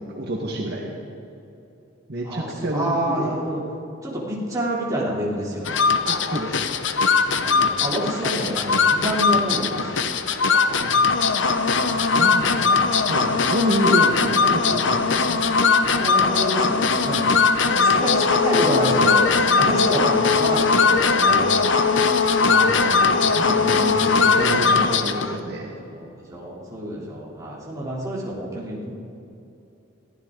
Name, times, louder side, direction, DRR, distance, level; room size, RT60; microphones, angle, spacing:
voice 1, 0.2-0.9 2.1-3.4 6.0-6.9 10.7-11.2 11.5-15.4 22.4-25.7, right 1 dB, 50° right, -1 dB, 1.7 m, -29 dB
voice 2, 2.3-3.6 4.0-5.9 7.4-10.1 11.8-12.0 15.9-17.4 17.9-21.8 25.9-26.0 26.3-28.9, right 1 dB, 15° right, -6 dB, 3.6 m, -28 dB
sound 1, 5.6-25.4, left 4 dB, 65° left, 0.8 m, -20 dB
22.5 x 15.0 x 4.0 m, 2.8 s
head